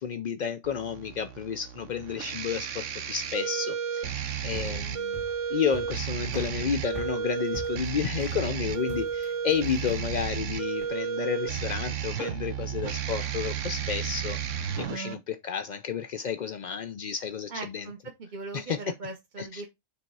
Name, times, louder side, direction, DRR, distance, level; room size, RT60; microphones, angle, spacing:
voice 1, 0.0-5.2 5.5-14.4 14.8-17.9 18.5-18.8 19.4-19.6, left 7 dB, 65° left, 0.4 m, -31 dB
sound 1, 0.6-15.1, right 8 dB, 70° right, 1.2 m, -33 dB
sound 2, 4.4-11.0, left 1 dB, 25° right, 1.7 m, -44 dB
voice 2, 17.5-19.7, right 3 dB, 40° right, 0.9 m, -40 dB
7.0 x 3.5 x 4.6 m
omnidirectional pair, 1.4 m